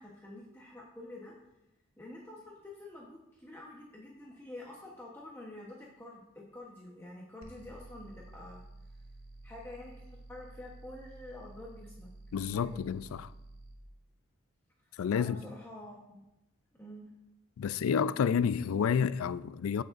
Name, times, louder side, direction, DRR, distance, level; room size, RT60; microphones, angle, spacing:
voice 1, 0.0-1.3 2.0-8.6 9.4-12.1 12.4-13.2 15.1-16.3 16.8-17.1, left 1 dB, 10° left, 0.9 m, -48 dB
sound 1, 7.4-13.8, right 2 dB, 80° right, 1.2 m, -51 dB
voice 2, 12.3-13.3 15.0-15.4 17.6-19.8, left 7 dB, 80° left, 0.3 m, -30 dB
15.5 x 6.4 x 2.5 m
head